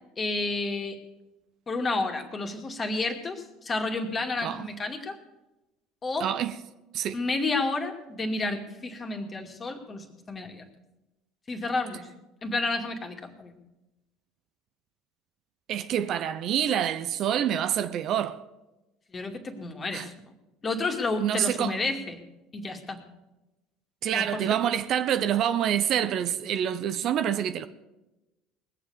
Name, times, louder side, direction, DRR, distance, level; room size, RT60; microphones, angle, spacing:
voice 1, 0.2-1.0 1.7-5.2 6.0-6.3 7.1-10.6 11.5-12.1 12.4-13.6 19.1-20.1 20.6-22.2 22.5-23.0 24.1-24.5, left 3 dB, 30° left, 2.4 m, -31 dB
voice 2, 6.2-6.5 6.9-7.2 15.7-18.4 19.9-20.1 21.2-21.8 24.0-27.7, right 10 dB, 55° right, 0.8 m, -27 dB
20.0 x 7.5 x 6.9 m
hypercardioid pair, 70°, 0 cm